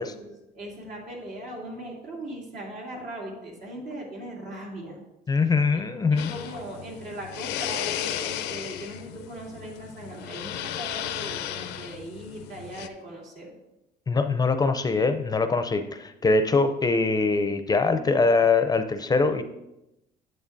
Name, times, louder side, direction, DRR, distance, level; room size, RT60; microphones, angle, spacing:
voice 1, 0.0-5.0 5.7-5.8 6.1-13.5, right 1 dB, 75° right, -3 dB, 2.8 m, -39 dB
voice 2, 5.3-6.3 14.1-19.4, left 4 dB, 25° left, 9 dB, 0.5 m, -23 dB
sound 1, 6.2-12.9, left 11 dB, 90° left, 0.5 m, -34 dB
9.7 x 7.8 x 2.6 m, 0.90 s
cardioid pair, 110°, 17 cm